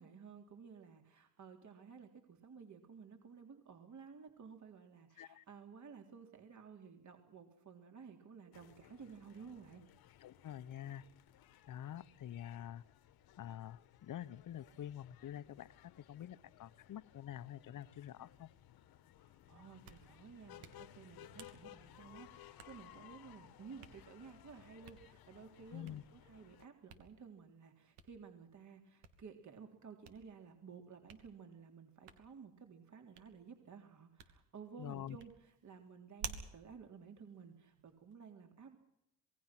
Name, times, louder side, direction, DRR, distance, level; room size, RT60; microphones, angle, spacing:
voice 1, 0.0-9.8 19.2-38.8, right 6 dB, 50° right, 4 dB, 3.7 m, -55 dB
sound 1, 8.5-26.7, left 13 dB, 70° left, 1.7 m, -60 dB
voice 2, 10.2-11.0 11.7-12.8 13.4-15.7 16.0-18.5 25.7-26.0 34.8-35.2, left 11 dB, 55° left, 16 dB, 1.2 m, -47 dB
Hands, 19.6-38.1, right 6 dB, 90° right, 2.9 m, -56 dB
27.5 x 20.0 x 6.2 m, 0.86 s
supercardioid pair, 75°, 38 cm